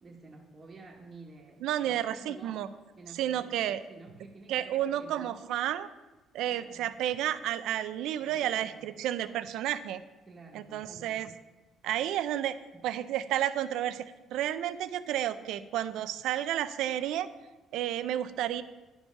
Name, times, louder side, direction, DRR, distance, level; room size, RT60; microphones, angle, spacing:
voice 1, 0.0-5.6 6.5-6.9 8.2-8.9 10.3-11.4 12.7-12.8, right 3 dB, 30° right, -5 dB, 1.3 m, -51 dB
voice 2, 1.6-2.7 3.2-3.8 4.5-5.9 6.3-10.0 10.5-11.3 11.8-12.6 12.8-14.0 14.3-17.3 17.7-18.6, right 11 dB, 80° right, 14 dB, 0.5 m, -31 dB
11.0 x 5.4 x 5.8 m, 1.2 s
cardioid pair, 115°, 0 cm